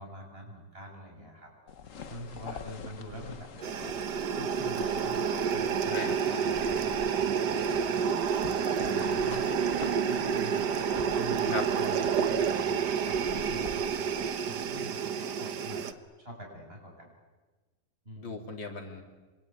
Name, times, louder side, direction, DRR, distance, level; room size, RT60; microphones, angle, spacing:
voice 1, 0.0-1.5 2.1-3.5 4.1-9.7 10.0-10.8 11.2-17.1 18.0-18.4, equal, 30° right, 1 dB, 7.8 m, -45 dB
sound 1, 1.7-15.1, left 6 dB, 50° left, 1.4 m, -47 dB
sound 2, 3.6-15.9, right 7 dB, 65° right, 1.7 m, -29 dB
sound 3, 3.6-11.4, right 8 dB, 85° right, 3.3 m, -46 dB
voice 2, 8.8-9.3 11.5-11.6 18.2-19.0, left 3 dB, 90° left, 4 dB, 3.9 m, -37 dB
27.5 x 25.0 x 8.7 m, 1.3 s
omnidirectional pair, 2.0 m